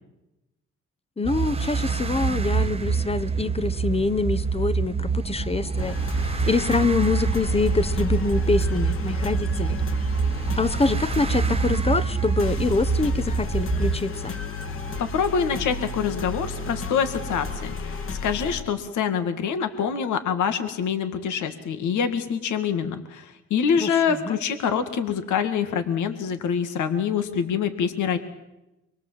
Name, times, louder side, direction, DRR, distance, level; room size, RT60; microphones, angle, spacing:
voice 1, 1.2-6.0 6.4-9.8 10.6-14.4 23.8-24.0 24.2-24.3, left 3 dB, 20° left, 14 dB, 1.1 m, -25 dB
sound 1, 1.2-14.0, right 5 dB, 20° right, 1.3 m, -26 dB
sound 2, 5.8-18.6, left 4 dB, 45° left, 2.6 m, -33 dB
voice 2, 15.0-28.2, left 7 dB, 75° left, 8 dB, 2.1 m, -25 dB
25.0 x 22.5 x 7.6 m, 0.95 s
cardioid pair, 90°, 30 cm